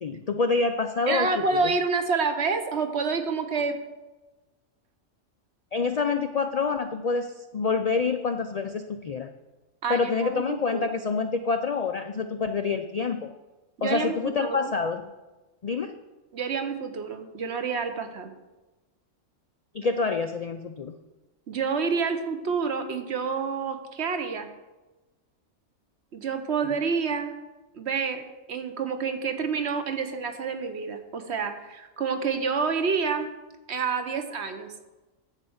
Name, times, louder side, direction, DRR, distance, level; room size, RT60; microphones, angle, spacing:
voice 1, 0.0-1.7 5.7-9.3 9.9-13.3 13.8-15.0 15.6-15.9 19.7-20.9 26.6-26.7, left 4 dB, 65° left, 7 dB, 0.3 m, -27 dB
voice 2, 1.1-3.8 9.8-10.4 10.7-11.0 13.8-14.7 16.3-18.3 21.5-24.5 26.1-27.3 27.7-28.2 28.5-33.3 33.7-34.7, right 5 dB, 60° right, 7 dB, 1.1 m, -28 dB
10.5 x 4.5 x 7.9 m, 1.1 s
omnidirectional pair, 1.3 m